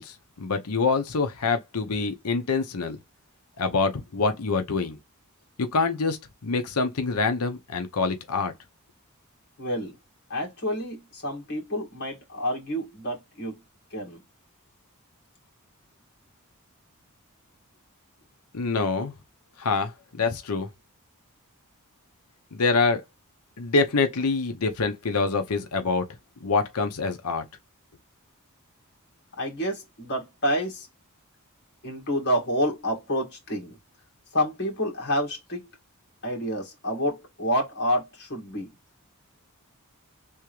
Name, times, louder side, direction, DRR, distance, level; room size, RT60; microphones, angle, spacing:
voice 1, 0.0-3.0 3.6-5.0 5.6-8.5 18.5-19.1 19.6-20.7 22.5-23.0 23.6-26.0 26.4-27.4, left 4 dB, 80° left, 0.8 m, -26 dB
voice 2, 9.6-10.0 10.3-13.6 13.9-14.2 29.4-30.9 31.8-33.8 34.3-35.6 36.2-38.7, equal, 50° left, 1.8 m, -28 dB
3.6 x 2.7 x 3.0 m
head